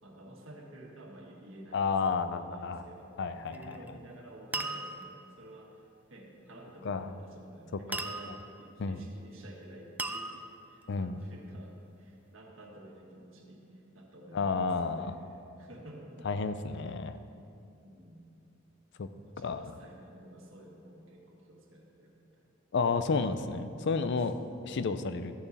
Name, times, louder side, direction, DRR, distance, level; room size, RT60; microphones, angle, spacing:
voice 1, 0.0-3.2 3.5-16.3 17.8-18.2 19.2-22.4 24.3-24.7, right 1 dB, 75° right, -1 dB, 1.6 m, -51 dB
voice 2, 1.7-2.8 3.2-3.8 6.8-7.1 8.8-9.0 10.9-11.2 14.3-15.2 16.2-17.2 19.0-19.1 19.4-19.6 22.7-24.3 24.7-25.3, left 4 dB, 60° left, 11 dB, 0.5 m, -31 dB
sound 1, 3.5-3.9 4.5-5.3 7.9-8.6 10.0-10.8, right 2 dB, 10° right, 0.3 m, -37 dB
13.5 x 7.0 x 4.1 m, 2.7 s
head